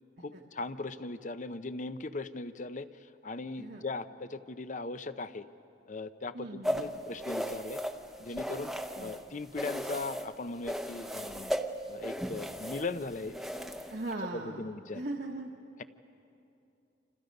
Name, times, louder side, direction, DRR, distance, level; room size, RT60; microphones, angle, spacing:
voice 1, 0.2-5.5 5.9-7.8 8.2-8.7 9.0-11.5 11.9-13.4 14.6-15.0, left 3 dB, 45° left, 12 dB, 0.7 m, -39 dB
voice 2, 6.3-6.9 9.0-9.1 13.9-15.5, right 2 dB, 60° right, -1 dB, 1.3 m, -39 dB
sound 1, 6.6-9.2 9.5-10.3 10.6-14.1, equal, ahead, 0.8 m, -36 dB
29.0 x 27.5 x 5.4 m, 2.7 s
head